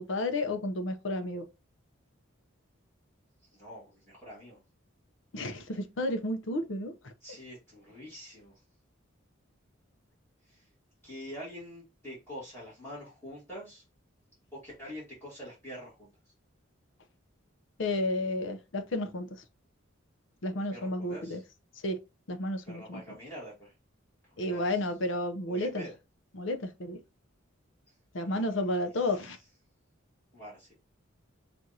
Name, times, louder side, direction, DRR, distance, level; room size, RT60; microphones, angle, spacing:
voice 1, 0.0-1.4 5.3-7.1 17.8-19.4 20.4-21.4 21.8-22.0 22.3-23.0 24.4-25.9 26.3-27.0 28.1-29.4, left 1 dB, 65° left, 0.7 m, -32 dB
voice 2, 3.5-4.6 7.2-8.6 10.5-10.7 11.0-13.8 14.5-16.1 20.6-21.4 22.6-23.7 24.3-24.9 25.5-25.9 28.2-28.6 29.0-29.2 30.3-30.7, equal, 10° left, 1.8 m, -46 dB
6.1 x 2.5 x 2.7 m
head